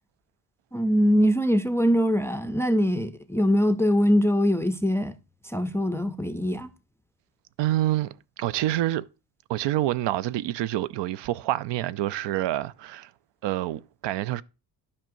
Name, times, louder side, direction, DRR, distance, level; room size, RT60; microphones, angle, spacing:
voice 1, 0.7-5.2 5.4-6.7, equal, 5° left, 0.4 m, -22 dB
voice 2, 7.6-9.0 9.5-13.1 13.4-14.4, right 14 dB, 75° right, 0.5 m, -27 dB
12.0 x 5.5 x 2.6 m
cardioid pair, 125°, 43 cm